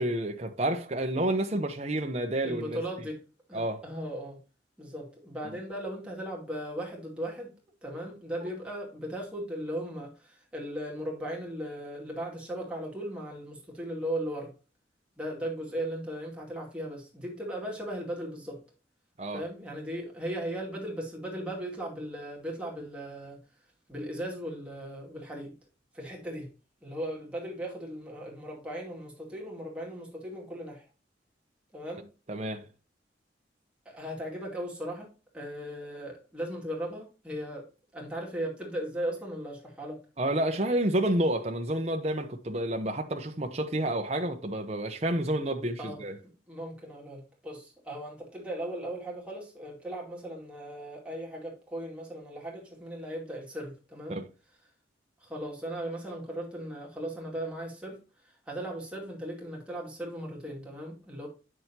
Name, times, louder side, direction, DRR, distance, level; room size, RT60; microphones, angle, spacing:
voice 1, 0.0-2.8 3.5-3.8 19.2-19.4 32.3-32.6 40.2-46.2 54.1-54.2, right 1 dB, 35° right, 0.9 m, -29 dB
voice 2, 2.4-3.2 3.5-4.4 4.8-7.5 7.8-14.5 15.2-18.6 19.3-23.4 23.9-25.5 25.9-26.5 26.8-30.8 31.7-32.1 33.9-35.1 35.3-37.6 37.9-40.0 45.8-54.2 55.2-58.0 58.2-61.3, right 1 dB, 5° right, 2.4 m, -37 dB
9.2 x 6.3 x 2.9 m
head